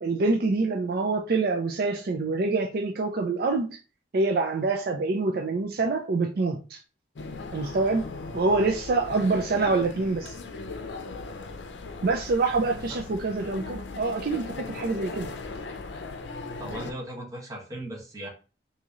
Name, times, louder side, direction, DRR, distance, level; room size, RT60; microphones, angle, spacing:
voice 1, 0.0-3.8 4.1-6.8 7.5-8.1 8.3-10.4 12.0-15.3, right 3 dB, 55° right, 0.4 m, -26 dB
sound 1, 7.2-16.9, left 3 dB, 75° left, 0.5 m, -38 dB
voice 2, 16.6-18.3, right 1 dB, 20° right, 1.2 m, -37 dB
3.0 x 2.7 x 3.6 m
head